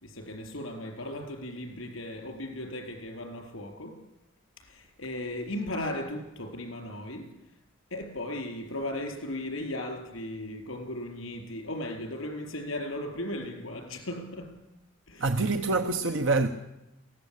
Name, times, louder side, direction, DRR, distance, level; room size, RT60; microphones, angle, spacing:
voice 1, 0.0-4.0 4.7-7.3 7.9-14.5 15.1-15.3, left 1 dB, 80° left, 4.2 m, -36 dB
voice 2, 15.2-16.5, right 3 dB, 70° right, 1.0 m, -25 dB
22.0 x 16.0 x 8.6 m
head